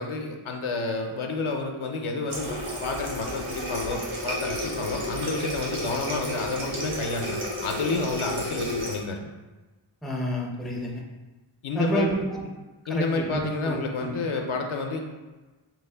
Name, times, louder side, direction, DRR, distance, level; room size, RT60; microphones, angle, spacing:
voice 1, 0.0-9.3 11.6-12.2 12.9-15.0, left 3 dB, 75° left, 2 dB, 0.6 m, -30 dB
Water tap faucet, 2.3-9.0, left 1 dB, 85° right, 1.0 m, -32 dB
voice 2, 10.0-11.0 11.7-12.4 12.9-14.1, equal, ahead, 0 dB, 0.5 m, -29 dB
4.5 x 2.0 x 3.3 m, 1.2 s
wide cardioid pair, 45°, 50 cm